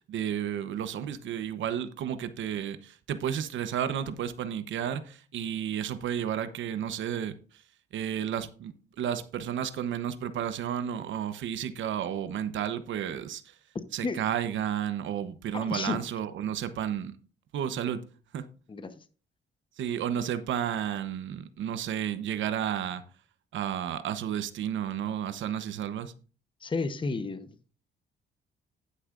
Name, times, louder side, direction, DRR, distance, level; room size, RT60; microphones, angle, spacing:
voice 1, 0.1-7.3 7.9-13.4 13.9-17.2 17.5-18.0 18.3-18.4 19.8-23.0 23.5-26.1, right 9 dB, 75° right, 0.9 m, -32 dB
voice 2, 15.5-16.0 18.7-19.0 26.6-27.5, left 3 dB, 25° left, 1.0 m, -32 dB
11.0 x 9.7 x 2.5 m
cardioid pair, 90°, 20 cm